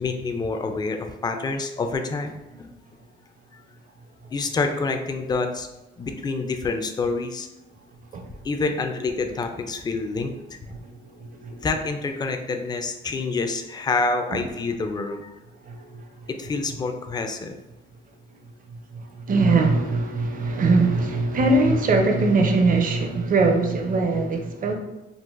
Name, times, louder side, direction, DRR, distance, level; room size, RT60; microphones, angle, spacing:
voice 1, 0.0-2.7 4.3-5.7 6.0-7.5 8.4-10.3 10.6-10.7 11.6-15.3 16.3-17.6, left 3 dB, 20° left, 0.3 m, -27 dB
voice 2, 10.7-11.7 14.3-14.4 15.6-16.3 18.7-24.7, right 3 dB, 45° right, 0.6 m, -22 dB
3.8 x 2.1 x 2.4 m
cardioid pair, 90°, 20 cm